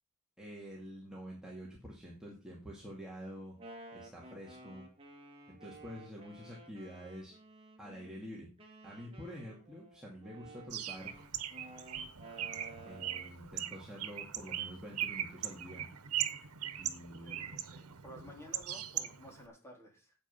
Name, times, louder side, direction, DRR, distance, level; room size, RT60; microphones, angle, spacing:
voice 1, 0.4-3.5 3.9-4.8 5.5-7.4 7.8-8.5 8.8-11.1 12.8-15.9 16.8-17.5, equal, 5° right, -4 dB, 2.3 m, -47 dB
Wind instrument woodwind instrument, 3.4-8.1 8.6-13.3, right 2 dB, 25° right, 2.5 m, -53 dB
Bird, 10.7-19.5, right 11 dB, 85° right, 1.1 m, -40 dB
voice 2, 17.2-20.1, equal, 10° left, 0 dB, 3.4 m, -53 dB
9.1 x 8.1 x 5.5 m, 0.34 s
head